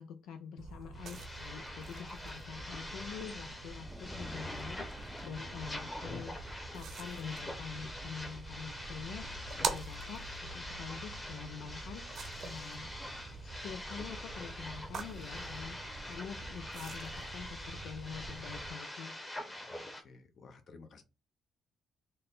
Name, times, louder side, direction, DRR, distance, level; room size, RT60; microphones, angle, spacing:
voice 1, 0.0-6.4 6.7-9.3 9.6-12.1 12.4-12.9 13.4-15.8 16.0-19.2, left 7 dB, 85° left, 6 dB, 0.3 m, -46 dB
sound 1, 0.6-18.7, right 4 dB, 65° right, 0.7 m, -45 dB
sound 2, 0.9-20.0, left 1 dB, 20° left, 1.0 m, -45 dB
Thunder / Rain, 2.7-18.7, equal, 5° right, 0.4 m, -55 dB
voice 2, 19.7-21.0, left 4 dB, 55° left, 7 dB, 0.7 m, -55 dB
4.1 x 2.2 x 3.6 m, 0.30 s
cardioid pair, 90°, 0 cm